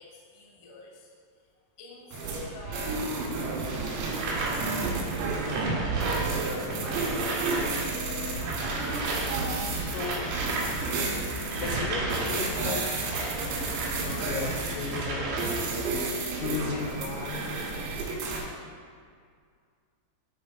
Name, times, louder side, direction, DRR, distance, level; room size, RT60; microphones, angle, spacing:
voice 1, 0.0-1.5 1.8-3.0 3.6-4.1 4.9-5.1, left 3 dB, 70° left, -3 dB, 2.0 m, -48 dB
sound 1, 2.1-18.4, right 3 dB, 85° right, 4.0 m, -31 dB
sound 2, 4.0-7.9 8.1-14.0 14.4-15.9, right 2 dB, 65° right, 2.9 m, -34 dB
voice 2, 6.7-7.3 9.7-10.3 11.5-12.9 13.9-15.5 16.3-17.9, left 5 dB, 90° left, 3 dB, 3.4 m, -36 dB
sound 3, 8.3-15.8, equal, 50° right, 2.2 m, -40 dB
10.0 x 4.0 x 4.6 m, 2.1 s
omnidirectional pair, 5.9 m